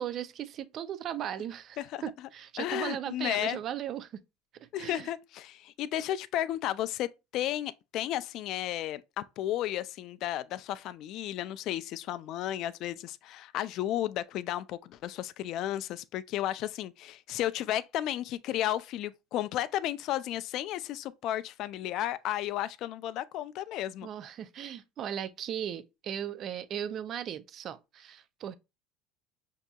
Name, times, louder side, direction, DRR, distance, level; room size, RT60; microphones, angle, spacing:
voice 1, 0.0-4.1 4.8-5.1 24.0-28.6, right 10 dB, 35° right, 0.3 m, -37 dB
voice 2, 2.6-3.6 4.7-24.1, left 12 dB, 45° left, 0.3 m, -33 dB
6.0 x 2.7 x 2.2 m
cardioid pair, 160°, 0 cm